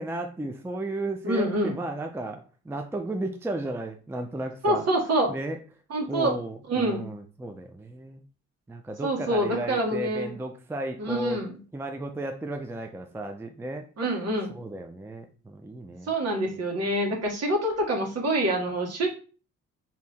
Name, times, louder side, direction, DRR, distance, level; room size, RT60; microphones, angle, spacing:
voice 1, 0.0-4.8 5.3-5.6 6.1-8.2 8.7-11.4 11.7-16.2, right 1 dB, 10° right, 5 dB, 0.5 m, -34 dB
voice 2, 1.2-1.7 4.6-5.3 5.9-6.4 6.7-7.0 9.0-10.3 11.0-11.6 14.0-14.5 16.1-19.1, right 1 dB, 55° right, 1 dB, 1.5 m, -26 dB
3.5 x 2.9 x 4.2 m, 0.38 s
cardioid pair, 90°, 30 cm